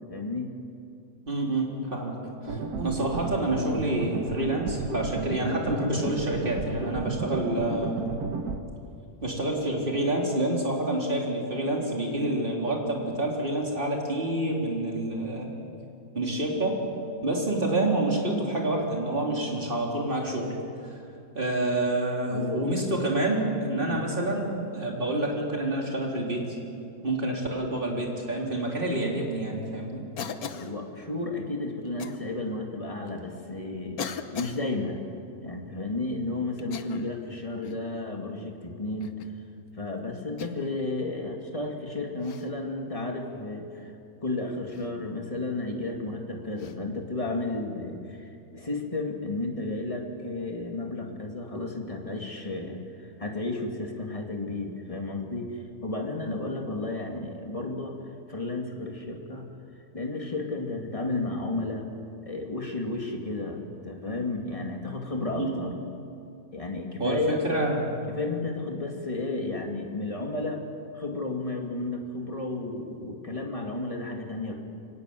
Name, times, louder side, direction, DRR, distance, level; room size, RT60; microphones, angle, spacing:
voice 1, 0.1-0.5 22.3-22.7 23.8-24.0 30.5-35.0 35.4-39.1 39.8-43.9 44.2-58.0 58.3-59.5 59.9-61.9 62.2-65.7 66.5-67.4 68.1-70.6 70.9-74.5, left 2 dB, 20° left, 1 dB, 2.4 m, -33 dB
voice 2, 1.3-8.0 9.2-15.6 16.1-16.8 17.2-20.6 20.8-21.0 21.3-24.5 24.7-26.4 27.0-30.0 65.4-65.6 67.0-67.9, right 1 dB, 35° right, -1 dB, 3.9 m, -28 dB
sound 1, 2.5-8.6, right 4 dB, 80° right, 1.8 m, -33 dB
Cough, 30.2-30.7 32.0-32.2 33.1-33.2 34.0-34.6 36.6-37.2 37.6-37.9 39.0-39.4 40.4-40.8 42.2-42.5 44.7-44.9 46.6-46.8, left 7 dB, 75° left, 1.5 m, -38 dB
25.0 x 18.5 x 7.8 m, 2.6 s
omnidirectional pair, 1.6 m